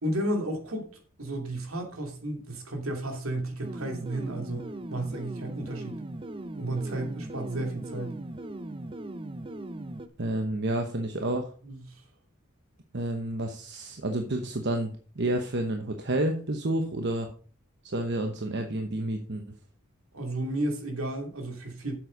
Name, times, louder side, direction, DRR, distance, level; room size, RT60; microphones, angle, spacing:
voice 1, 0.0-0.9 1.2-6.0 6.6-8.2 11.6-12.0 20.1-22.0, right 1 dB, 75° right, 2.7 m, -33 dB
sound 1, 3.6-10.1, right 1 dB, 25° right, 0.5 m, -39 dB
voice 2, 10.2-11.5 12.9-17.3 17.8-19.4, right 1 dB, 55° right, 1.0 m, -30 dB
7.9 x 7.7 x 5.2 m
head